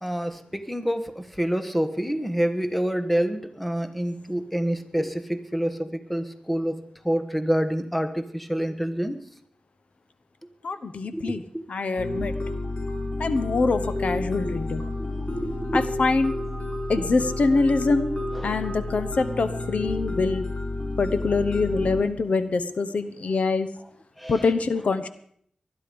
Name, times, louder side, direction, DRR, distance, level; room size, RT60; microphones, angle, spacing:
voice 1, 0.0-6.8 7.0-9.2 11.1-11.6 15.3-15.8 18.3-18.6 24.2-24.4, equal, 5° left, 9 dB, 1.2 m, -27 dB
voice 2, 10.6-11.4 11.7-12.3 13.2-14.8 15.7-16.3 16.9-18.1 18.4-20.4 21.0-23.7 24.3-25.1, left 3 dB, 70° left, 11 dB, 1.0 m, -24 dB
sound 1, 12.0-22.0, left 2 dB, 50° left, 3.3 m, -30 dB
20.0 x 12.0 x 5.2 m, 0.65 s
wide cardioid pair, 105°, 2 cm